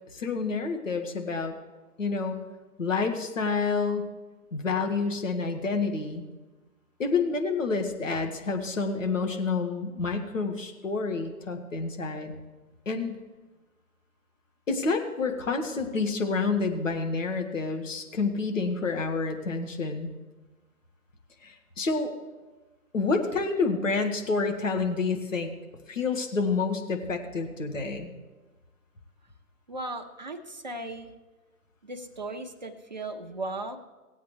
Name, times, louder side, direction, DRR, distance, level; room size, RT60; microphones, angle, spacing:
voice 1, 0.1-1.5 2.0-2.4 2.8-4.1 4.5-6.3 7.0-12.3 12.8-13.2 14.7-20.1 21.4-22.1 22.9-25.5 25.9-28.1, left 4 dB, 55° left, 4 dB, 1.6 m, -28 dB
voice 2, 29.7-31.1 31.8-33.8, right 2 dB, 30° right, 5 dB, 0.7 m, -37 dB
18.5 x 8.3 x 3.1 m, 1.2 s
figure-of-eight pair, 150°, 46 cm